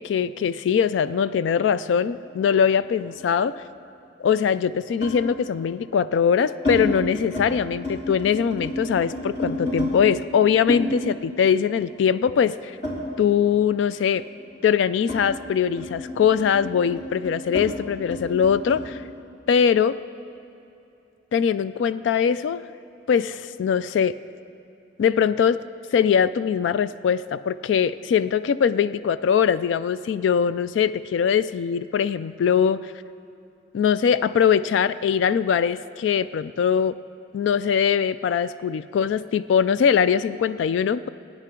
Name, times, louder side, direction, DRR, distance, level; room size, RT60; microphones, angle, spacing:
voice 1, 0.0-3.6 4.2-12.8 13.2-14.2 14.6-19.0 19.5-20.0 21.3-22.6 23.1-24.2 25.0-25.6 25.9-32.9 33.7-37.0 37.3-41.1, left 7 dB, 85° left, 15 dB, 0.3 m, -22 dB
sound 1, 2.1-3.7 5.0-5.3 6.0-6.8 7.2-7.5 7.8-9.9 10.7-13.6 13.9-18.8, left 1 dB, 65° left, 3.1 m, -32 dB
21.5 x 9.9 x 3.8 m, 2.8 s
head